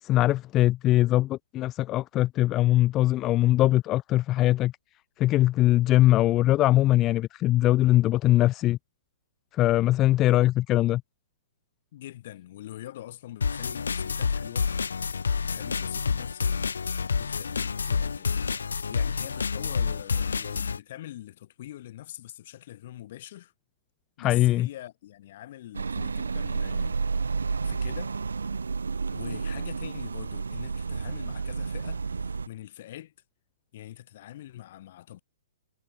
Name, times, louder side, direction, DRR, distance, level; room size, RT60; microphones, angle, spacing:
voice 1, 0.0-4.7 5.2-8.8 9.5-11.0 24.2-24.7, left 15 dB, 25° left, 0.7 m, -22 dB
voice 2, 11.9-14.7 15.5-23.5 24.2-28.1 29.1-33.1 33.7-35.2, left 13 dB, 55° left, 5.8 m, -44 dB
sound 1, 13.4-20.8, left 5 dB, 85° left, 1.7 m, -28 dB
sound 2, 25.7-32.5, right 4 dB, 90° right, 3.4 m, -31 dB
hypercardioid pair, 130°, 0 cm